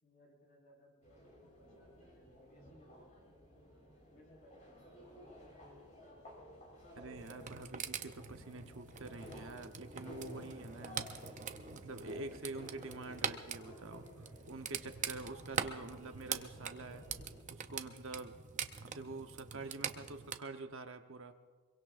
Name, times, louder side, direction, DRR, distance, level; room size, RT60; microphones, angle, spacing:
voice 1, 0.0-5.2, equal, 60° left, -2 dB, 5.2 m, -65 dB
sound 1, 1.0-17.4, left 1 dB, 35° left, 4.3 m, -55 dB
voice 2, 7.0-11.1 11.7-17.0 17.5-18.4 18.8-21.4, right 3 dB, 60° right, 7 dB, 0.9 m, -47 dB
sound 2, 7.2-20.4, right 7 dB, 35° right, 0.6 m, -44 dB
24.5 x 23.0 x 2.5 m, 1.5 s
head